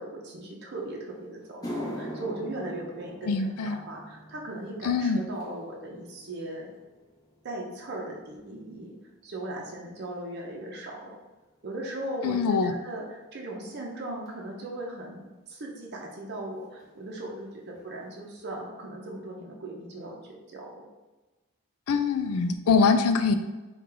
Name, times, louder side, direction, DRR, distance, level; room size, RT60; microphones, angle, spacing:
voice 1, 0.0-6.7 7.4-9.0 9.2-11.2 11.6-20.9, right 1 dB, 50° right, -2 dB, 0.7 m, -38 dB
sound 1, 0.9-1.0 1.4-9.9 10.2-10.7 11.4-11.5 14.3-14.4 16.0-16.1 16.3-16.5 16.8-17.3 17.7-17.8 18.4-18.5, equal, 15° left, 0.7 m, -43 dB
voice 2, 3.3-3.8 4.8-5.2 12.2-12.7 21.9-23.4, left 5 dB, 85° left, 9 dB, 0.4 m, -23 dB
4.3 x 2.4 x 3.8 m, 1.2 s
head